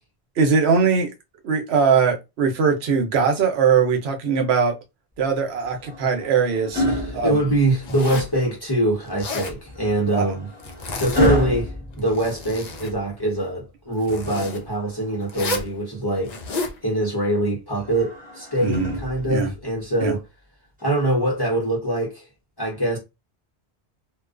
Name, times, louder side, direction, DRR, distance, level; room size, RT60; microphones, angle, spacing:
voice 1, 0.4-1.1 1.4-4.7 5.2-6.8 7.1-7.4 10.1-10.2 18.6-18.9 19.3-19.5 20.0-20.1, right 5 dB, 80° right, 0.9 m, -20 dB
sound 1, 5.6-8.1 9.6-12.8 14.6-15.8 17.7-19.6 20.8-21.0, left 1 dB, 10° right, 1.1 m, -29 dB
voice 2, 6.8-10.5 10.9-16.3 16.8-20.2 20.8-22.2 22.6-23.0, right 1 dB, 25° left, 0.9 m, -23 dB
Zipper (clothing), 7.8-8.4 9.0-9.6 10.6-11.5 11.9-12.9 14.0-14.6 15.3-15.7 16.2-16.8, left 2 dB, 50° left, 0.5 m, -31 dB
2.4 x 2.2 x 2.4 m
omnidirectional pair, 1.1 m